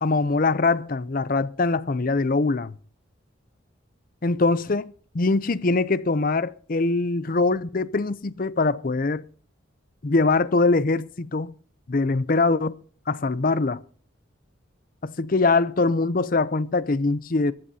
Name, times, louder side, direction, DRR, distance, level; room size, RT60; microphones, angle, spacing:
voice 1, 0.0-2.8 4.2-9.2 10.0-11.5 11.9-12.8 13.1-13.8 15.0-17.5, left 3 dB, 45° left, 0.6 m, -23 dB
23.0 x 15.0 x 2.8 m
head